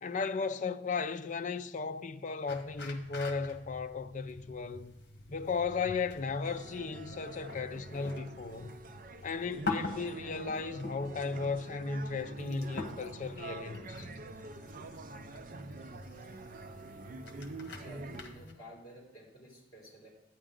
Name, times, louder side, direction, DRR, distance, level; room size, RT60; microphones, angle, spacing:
voice 1, 0.0-5.0 5.3-8.8 9.2-14.1, left 4 dB, 40° left, 0.5 m, -35 dB
sound 1, 2.5-18.5, left 3 dB, 55° left, 1.3 m, -45 dB
sound 2, 6.4-18.2, right 3 dB, 45° right, 0.5 m, -46 dB
voice 2, 17.7-20.1, equal, 25° left, 3.6 m, -52 dB
11.0 x 9.1 x 3.8 m
head